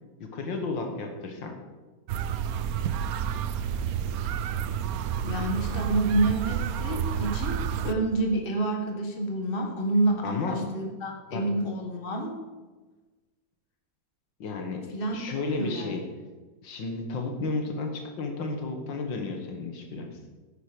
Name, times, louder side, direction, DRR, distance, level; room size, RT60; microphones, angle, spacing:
voice 1, 0.2-1.6 10.2-10.6 11.3-11.4 14.4-14.8 15.1-16.0 16.6-20.2, left 3 dB, 85° left, 4 dB, 2.1 m, -32 dB
sound 1, 2.1-7.9, right 8 dB, 70° right, 0.9 m, -30 dB
voice 2, 5.2-7.6 7.8-12.3 14.9-15.2 15.6-15.9, right 2 dB, 30° left, 2 dB, 1.6 m, -28 dB
10.0 x 9.2 x 5.1 m, 1.3 s
omnidirectional pair, 2.0 m